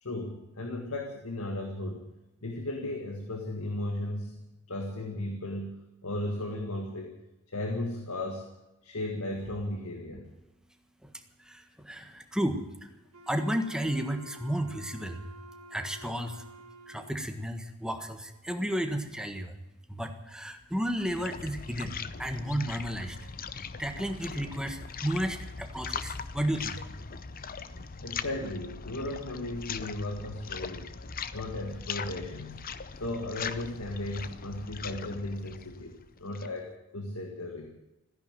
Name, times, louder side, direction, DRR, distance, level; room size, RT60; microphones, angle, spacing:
voice 1, 0.0-2.1 2.4-7.1 7.5-8.5 8.8-10.3 28.0-30.9 31.3-32.6 32.9-37.7, left 1 dB, 70° left, 3 dB, 1.9 m, -36 dB
voice 2, 11.0-12.9 13.3-15.2 15.7-16.4 16.9-19.6 19.9-23.3 23.8-26.8, equal, 5° right, 6 dB, 1.4 m, -33 dB
Wind instrument woodwind instrument, 13.1-17.4, right 1 dB, 70° right, 2.3 m, -50 dB
sound 1, 20.6-36.6, left 5 dB, 40° left, 0.7 m, -40 dB
15.0 x 10.5 x 9.0 m, 0.96 s
head